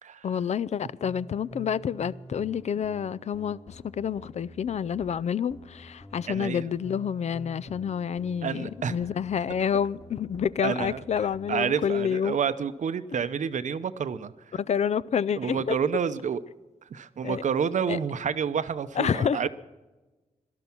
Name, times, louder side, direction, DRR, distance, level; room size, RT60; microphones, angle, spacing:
voice 1, 0.2-12.4 14.7-15.8 17.2-17.4 17.9-18.0 19.0-19.4, left 7 dB, 55° left, 0.4 m, -28 dB
sound 1, 1.0-11.7, left 1 dB, 20° left, 1.6 m, -48 dB
voice 2, 6.3-6.6 8.4-9.0 10.6-14.6 15.4-16.4 16.9-19.5, right 7 dB, 65° right, 0.7 m, -29 dB
17.5 x 12.5 x 6.0 m
wide cardioid pair, 160°, 13 cm